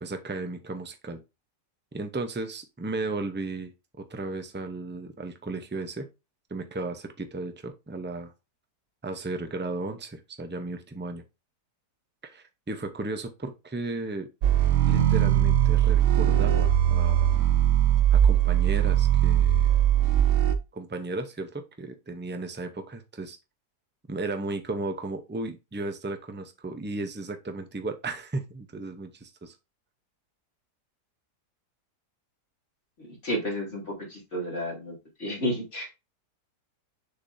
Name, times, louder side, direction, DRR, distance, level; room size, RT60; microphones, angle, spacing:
voice 1, 0.0-1.2 1.9-3.7 4.0-6.1 6.5-8.3 9.0-11.2 12.2-14.3 14.9-17.3 18.1-19.7 20.7-23.4 24.1-29.6, right 2 dB, 15° right, 7 dB, 0.4 m, -35 dB
sound 1, 14.4-20.5, right 11 dB, 55° right, 1.0 m, -21 dB
voice 2, 33.0-34.9 35.2-35.9, equal, 45° left, -2 dB, 3.1 m, -31 dB
6.8 x 5.9 x 2.7 m, 0.26 s
omnidirectional pair, 1.8 m